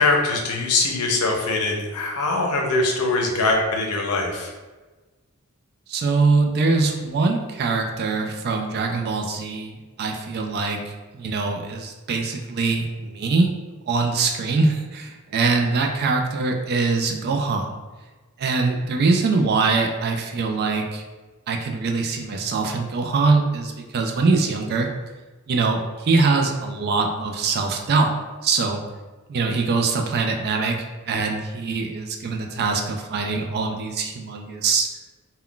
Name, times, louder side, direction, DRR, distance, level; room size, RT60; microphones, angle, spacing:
voice 1, 0.0-4.5, left 3 dB, 85° left, 1 dB, 0.6 m, -22 dB
voice 2, 5.9-13.5 13.9-17.7 18.4-21.0 21.5-24.9 25.5-28.1 28.4-28.8 29.3-30.8 31.1-34.9, right 4 dB, 45° right, 3 dB, 0.3 m, -23 dB
2.3 x 2.2 x 3.6 m, 1.3 s
head